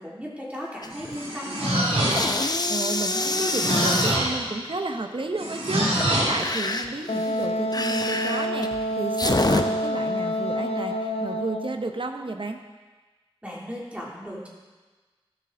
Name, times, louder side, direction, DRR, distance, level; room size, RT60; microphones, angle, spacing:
voice 1, 0.0-2.1 13.4-14.5, equal, 10° right, -5 dB, 2.9 m, -36 dB
sound 1, 0.8-1.2 1.5-4.2 5.8-9.6, left 2 dB, 40° left, 0.6 m, -27 dB
sound 2, 0.9-2.5 3.2-4.4 5.4-6.4, right 1 dB, 80° right, 2.6 m, -25 dB
voice 2, 2.7-12.6, right 2 dB, 60° right, 5 dB, 0.9 m, -32 dB
Wind instrument woodwind instrument, 7.1-11.8, equal, 80° left, 0.5 m, -28 dB
14.5 x 6.9 x 3.8 m, 1.3 s
wide cardioid pair, 50°, 10 cm